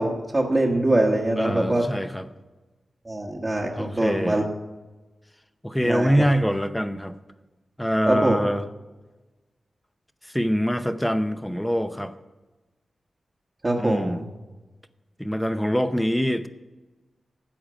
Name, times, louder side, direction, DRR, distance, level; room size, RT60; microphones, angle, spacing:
voice 1, 0.0-1.8 3.0-4.4 5.8-6.2 8.0-8.5 13.6-14.2, right 1 dB, 20° right, -3 dB, 1.2 m, -23 dB
voice 2, 1.4-2.3 3.8-4.5 5.6-7.2 7.8-8.6 10.2-12.1 13.8-14.2 15.2-16.5, equal, 5° left, 11 dB, 0.7 m, -24 dB
13.0 x 8.7 x 5.1 m, 1.2 s
wide cardioid pair, 120°, 0 cm